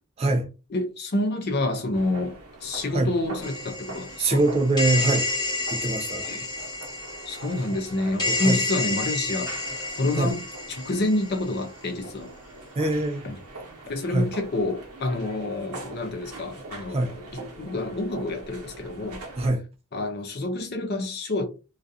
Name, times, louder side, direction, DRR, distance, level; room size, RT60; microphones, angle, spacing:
voice 1, 0.2-0.5 2.9-3.1 4.2-5.3 5.7-6.3 8.4-8.6 10.2-10.3 12.8-13.2 14.1-14.3 16.9-17.1 19.4-19.6, right 2 dB, 25° right, 0.3 m, -23 dB
voice 2, 0.7-4.4 6.2-6.5 7.3-9.5 10.0-10.4 10.7-12.3 13.2-13.3 13.9-19.2 19.9-21.5, left 2 dB, 45° left, 0.5 m, -28 dB
sound 1, 1.9-19.5, right 2 dB, 80° right, 0.9 m, -43 dB
sound 2, 3.4-11.5, left 2 dB, 20° left, 1.0 m, -30 dB
2.4 x 2.3 x 2.6 m
head